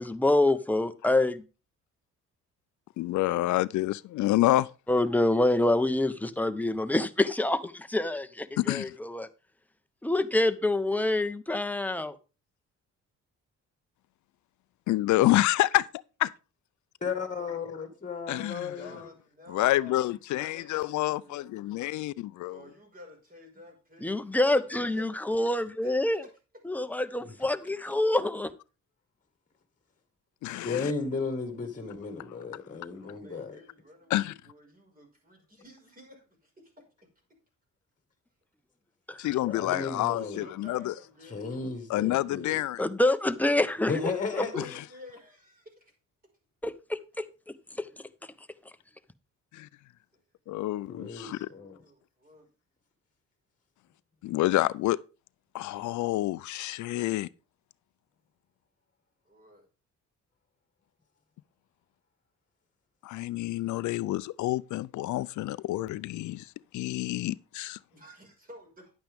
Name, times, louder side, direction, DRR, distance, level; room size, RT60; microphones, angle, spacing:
voice 1, 0.0-1.4 4.9-9.3 10.0-12.2 24.0-26.2 26.7-28.5 39.1-39.2 42.8-43.9 44.3-44.6 46.6-47.3 47.8-47.9, left 2 dB, 5° left, 0.8 m, -26 dB
voice 2, 3.0-4.7 8.6-8.9 14.9-15.9 16.2-16.3 18.3-18.7 19.5-22.6 30.4-30.9 34.1-34.3 39.2-40.9 41.9-42.8 49.5-49.7 50.5-51.5 54.2-55.0 55.5-57.3 63.0-67.8, left 16 dB, 75° left, 0.5 m, -28 dB
voice 3, 17.0-19.0 27.2-27.3 30.6-33.6 39.4-40.5 41.3-42.6 43.9-44.5 50.9-51.8, left 5 dB, 25° left, 1.7 m, -34 dB
voice 4, 18.7-21.4 22.5-25.2 25.8-26.3 32.9-37.1 40.4-41.5 44.3-45.9 51.1-52.5 59.2-59.7 67.9-68.9, left 1 dB, 30° right, 5.5 m, -52 dB
10.5 x 8.7 x 3.6 m
cardioid pair, 90°, 30 cm